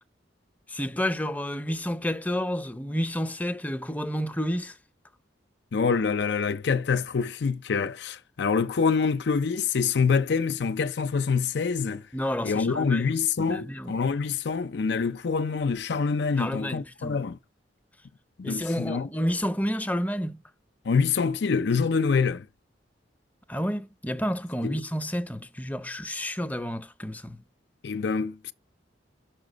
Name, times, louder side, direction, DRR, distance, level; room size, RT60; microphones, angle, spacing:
voice 1, 0.7-4.8 12.1-14.0 16.4-17.3 18.4-20.4 23.5-27.4, equal, 10° left, 0.6 m, -30 dB
voice 2, 5.7-12.0 12.4-17.4 18.4-19.1 20.9-22.5 24.6-24.8 27.8-28.5, left 5 dB, 65° left, 0.5 m, -26 dB
5.9 x 5.6 x 5.1 m
head